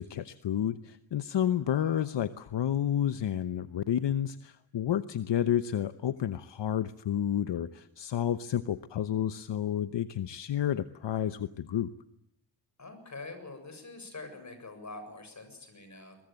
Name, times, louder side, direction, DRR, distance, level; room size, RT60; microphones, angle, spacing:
voice 1, 0.0-11.9, left 10 dB, 70° left, 12 dB, 1.0 m, -30 dB
voice 2, 1.7-2.0 12.8-16.2, left 3 dB, 40° left, 8 dB, 7.4 m, -45 dB
23.0 x 21.5 x 9.1 m, 0.75 s
wide cardioid pair, 110°, 45 cm